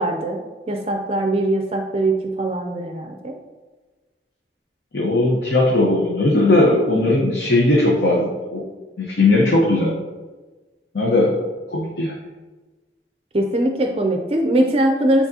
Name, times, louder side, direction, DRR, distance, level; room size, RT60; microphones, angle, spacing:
voice 1, 0.0-3.4 13.3-15.3, right 1 dB, 35° right, 3 dB, 0.4 m, -21 dB
voice 2, 4.9-8.6 9.0-10.0 10.9-11.3 11.7-12.2, left 2 dB, 70° left, -3 dB, 0.9 m, -18 dB
8.3 x 4.1 x 2.8 m, 1.3 s
head